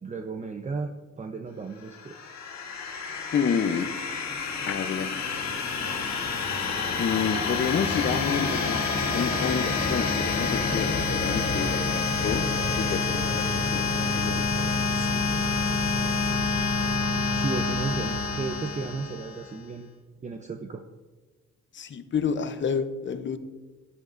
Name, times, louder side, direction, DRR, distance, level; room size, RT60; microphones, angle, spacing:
voice 1, 0.0-2.2 17.3-19.9 20.2-20.8, right 4 dB, 25° right, 5 dB, 0.6 m, -34 dB
sound 1, 1.9-19.5, left 4 dB, 60° left, 2.0 m, -27 dB
voice 2, 3.3-3.9 4.7-5.2 7.0-11.9 12.2-12.4 12.7-15.6 15.9-16.3 21.7-23.4, left 6 dB, 40° left, 10 dB, 0.7 m, -30 dB
11.0 x 9.5 x 2.6 m, 1.3 s
cardioid pair, 90°, 30 cm